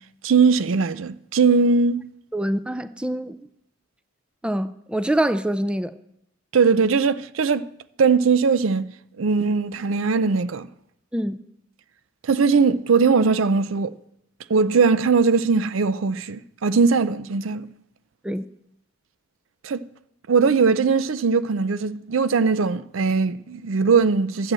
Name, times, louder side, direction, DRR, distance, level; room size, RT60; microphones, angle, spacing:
voice 1, 0.2-2.1 6.5-7.7 8.0-8.9 9.2-10.7 12.2-13.9 14.5-17.7 19.6-19.8 20.3-24.5, right 5 dB, 85° right, 0.5 m, -20 dB
voice 2, 2.3-3.4 4.4-5.9 11.1-11.4 18.2-18.5, right 1 dB, 5° right, 0.4 m, -25 dB
12.0 x 7.8 x 7.6 m
head